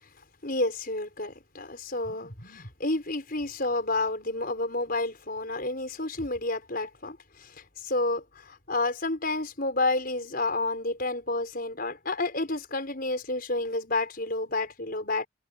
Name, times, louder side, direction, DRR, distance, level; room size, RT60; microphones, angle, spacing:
voice 1, 0.4-15.3, left 2 dB, 45° left, 5.9 m, -30 dB
head